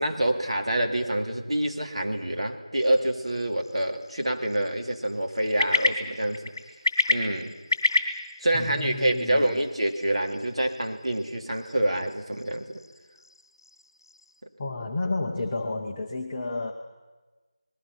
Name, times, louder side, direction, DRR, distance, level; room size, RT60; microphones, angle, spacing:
voice 1, 0.0-6.5 7.1-7.6 8.4-12.8, right 1 dB, 65° right, 3 dB, 2.6 m, -27 dB
sound 1, 2.7-14.4, left 2 dB, 40° left, 2.7 m, -32 dB
voice 2, 8.5-9.6 14.6-16.7, left 2 dB, 10° left, -1 dB, 0.8 m, -31 dB
29.5 x 20.5 x 5.8 m, 1.2 s
figure-of-eight pair, 175°, 3 cm